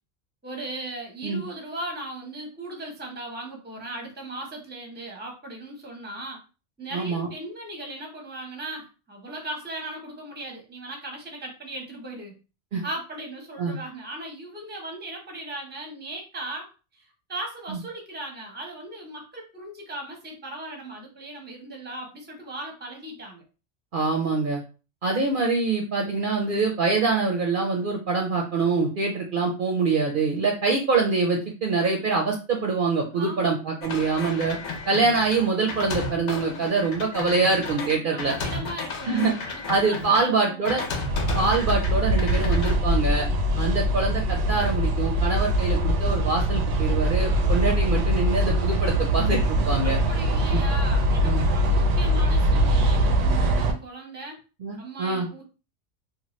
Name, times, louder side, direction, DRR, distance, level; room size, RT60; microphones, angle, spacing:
voice 1, 0.4-6.4 6.8-12.4 12.8-23.4 33.1-33.6 37.9-40.6 49.8-54.4 54.8-55.4, right 1 dB, 10° right, 1 dB, 0.6 m, -38 dB
voice 2, 6.9-7.3 12.7-12.8 13.6-13.8 17.7-17.8 23.9-24.6 25.0-34.6 34.9-38.3 39.0-39.3 39.7-40.8 41.3-43.3 43.6-50.0 51.2-51.5 54.6-55.3, right 4 dB, 55° right, 1 dB, 0.6 m, -24 dB
sound 1, 33.8-40.2 40.6-41.9 42.2-42.7, left 4 dB, 80° left, 1.0 m, -33 dB
sound 2, 41.1-53.7, right 1 dB, 90° right, 0.9 m, -22 dB
2.9 x 2.2 x 3.0 m, 0.33 s
omnidirectional pair, 1.2 m